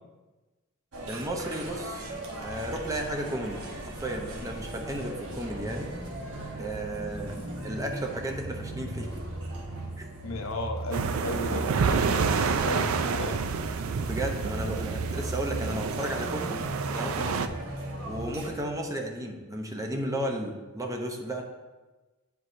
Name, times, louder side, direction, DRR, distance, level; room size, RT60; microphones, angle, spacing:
sound 1, 0.9-18.5, right 1 dB, 90° right, 1.2 m, -38 dB
voice 1, 1.1-2.1 2.4-3.6 3.9-5.9 6.6-9.1 10.0-10.1 14.1-16.6 16.9-17.5 18.1-21.4, right 1 dB, 15° right, 2 dB, 0.6 m, -34 dB
voice 2, 10.2-13.6, left 2 dB, 65° left, 3 dB, 0.8 m, -35 dB
sound 2, 10.9-17.5, right 5 dB, 75° right, 0.4 m, -29 dB
9.6 x 4.6 x 2.6 m, 1.2 s
head